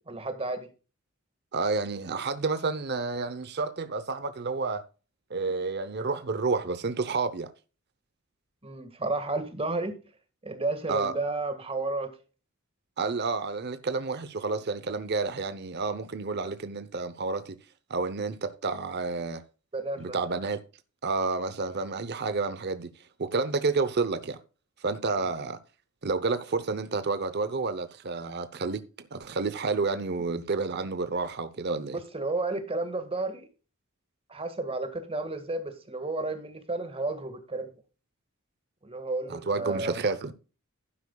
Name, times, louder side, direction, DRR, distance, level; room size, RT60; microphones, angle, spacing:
voice 1, 0.1-0.7 8.6-9.9 10.4-12.1 19.7-20.2 31.9-33.5 34.3-37.7 38.8-40.0, right 2 dB, 30° right, 1.7 m, -32 dB
voice 2, 1.5-4.8 5.3-7.5 10.9-11.1 13.0-17.6 17.9-19.4 20.0-20.6 21.0-22.9 23.2-24.4 24.8-25.6 26.0-28.8 29.1-32.0 39.3-40.3, right 4 dB, 50° right, 0.8 m, -30 dB
12.0 x 9.7 x 2.3 m
head